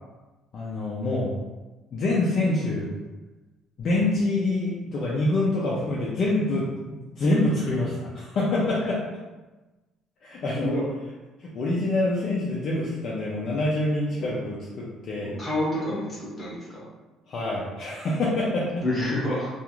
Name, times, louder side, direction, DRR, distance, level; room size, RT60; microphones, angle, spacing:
voice 1, 0.5-1.3 1.9-2.9 3.8-9.0 10.2-10.8 11.4-15.3 17.3-18.8, left 2 dB, 40° left, -5 dB, 0.4 m, -26 dB
voice 2, 14.0-14.4 15.4-16.8 18.8-19.5, left 1 dB, 15° left, -7 dB, 0.9 m, -28 dB
2.4 x 2.4 x 2.9 m, 1.2 s
cardioid pair, 165°, 0 cm